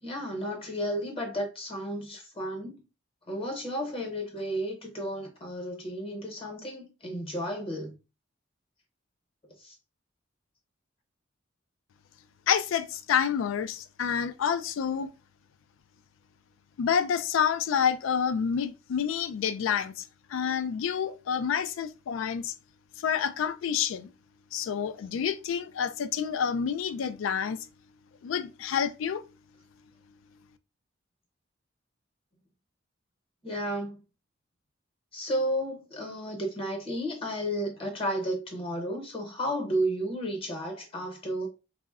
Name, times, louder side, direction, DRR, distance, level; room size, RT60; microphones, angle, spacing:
voice 1, 0.0-2.8 3.3-7.9 9.6-9.7 33.4-34.0 35.1-41.5, equal, 30° left, 0.8 m, -32 dB
voice 2, 12.5-15.1 16.8-22.5 23.0-24.1 24.5-27.6 28.2-29.2, left 7 dB, 80° left, 0.3 m, -28 dB
3.5 x 2.0 x 2.3 m
head